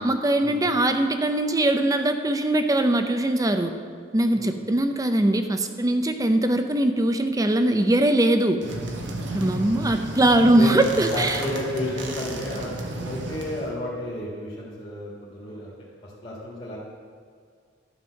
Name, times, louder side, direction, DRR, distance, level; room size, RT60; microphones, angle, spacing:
voice 1, 0.0-3.7 4.1-8.6 9.3-11.4, right 1 dB, 20° right, 7 dB, 0.6 m, -21 dB
sound 1, 8.6-13.8, right 1 dB, 65° right, 1.1 m, -33 dB
voice 2, 11.1-15.7 16.0-16.8, left 1 dB, 35° left, -7 dB, 1.9 m, -32 dB
12.0 x 5.5 x 6.4 m, 2.1 s
head